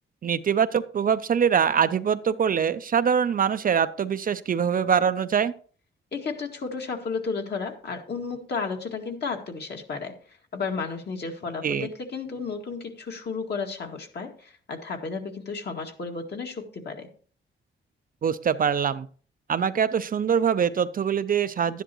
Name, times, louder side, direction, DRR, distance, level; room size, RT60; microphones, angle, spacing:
voice 1, 0.2-5.5 11.6-11.9 18.2-19.1 19.5-21.8, right 7 dB, 45° right, 12 dB, 0.5 m, -23 dB
voice 2, 6.1-10.1 10.5-17.1, left 4 dB, 55° left, 2 dB, 2.0 m, -33 dB
12.0 x 10.0 x 3.0 m, 0.43 s
wide cardioid pair, 130°, 21 cm